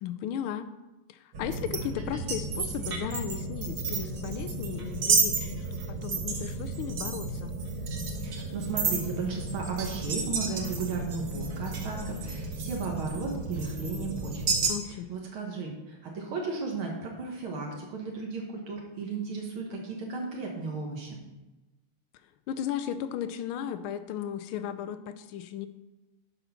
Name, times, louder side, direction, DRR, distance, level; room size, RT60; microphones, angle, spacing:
voice 1, 0.0-0.7 1.1-7.5 14.6-15.1 22.5-25.7, left 9 dB, 80° left, 11 dB, 1.4 m, -35 dB
sound 1, 1.3-14.7, right 4 dB, 55° right, 1.5 m, -32 dB
voice 2, 8.2-14.6 14.8-21.2, right 4 dB, 75° right, 0 dB, 2.2 m, -35 dB
11.0 x 4.3 x 5.7 m, 1.1 s
omnidirectional pair, 2.3 m